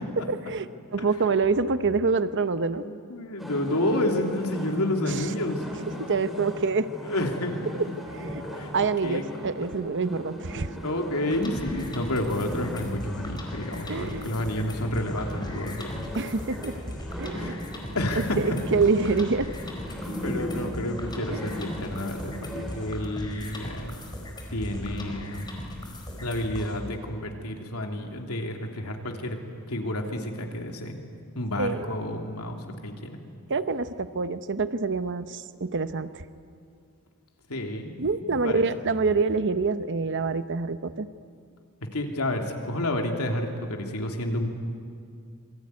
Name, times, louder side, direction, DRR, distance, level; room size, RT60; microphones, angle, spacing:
voice 1, 0.3-2.9 6.1-6.9 7.7-7.9 8.1-8.4 8.7-10.7 13.9-14.3 16.1-16.9 17.2-17.5 18.4-19.5 21.3-21.4 22.6-22.7 31.6-31.9 33.5-36.2 38.0-41.1, right 4 dB, 55° right, 12 dB, 0.8 m, -26 dB
voice 2, 2.7-5.6 7.0-7.6 8.5-8.7 9.0-9.2 10.8-16.0 17.3-17.6 17.9-18.6 20.2-23.9 24.5-25.5 26.2-29.4 29.7-31.0 31.3-33.2 37.5-38.0 38.3-38.6 41.9-44.5, left 1 dB, 80° left, 3 dB, 3.1 m, -30 dB
sound 1, 3.4-22.9, left 1 dB, ahead, 5.6 m, -38 dB
sound 2, 11.3-26.8, equal, 20° left, 4.6 m, -39 dB
27.0 x 23.0 x 9.6 m, 2.3 s
head